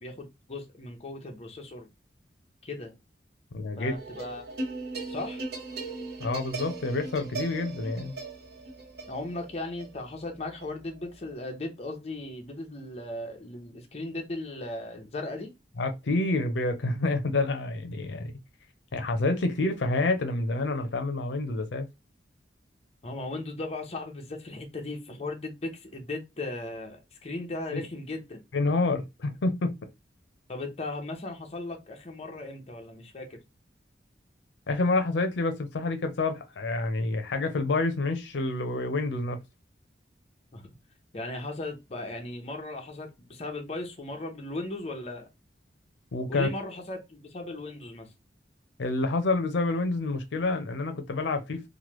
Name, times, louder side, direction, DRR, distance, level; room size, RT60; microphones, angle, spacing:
voice 1, 0.0-1.9 2.6-2.9 3.8-4.5 5.1-5.4 9.1-15.5 23.0-28.4 30.5-33.4 40.5-40.7 41.1-45.3 46.3-48.1, left 2 dB, 35° left, 0.7 m, -37 dB
voice 2, 3.5-3.9 6.2-8.1 15.8-18.3 18.9-21.9 27.7-27.8 28.5-29.9 34.7-39.4 46.1-46.5 48.8-51.7, left 2 dB, 90° left, 0.5 m, -28 dB
sound 1, 3.9-11.3, right 3 dB, 65° right, 0.9 m, -38 dB
3.1 x 2.1 x 3.0 m
head